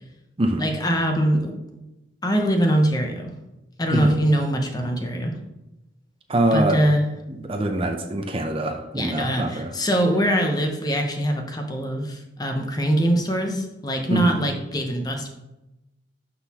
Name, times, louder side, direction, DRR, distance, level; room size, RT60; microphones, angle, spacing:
voice 1, 0.6-1.6 2.2-3.3 3.8-5.3 6.5-7.0 8.9-15.3, equal, 20° left, 3 dB, 0.7 m, -23 dB
voice 2, 6.3-6.8 7.3-9.7 14.1-14.3, right 1 dB, 30° right, 4 dB, 0.5 m, -24 dB
11.5 x 3.9 x 2.9 m, 0.97 s
head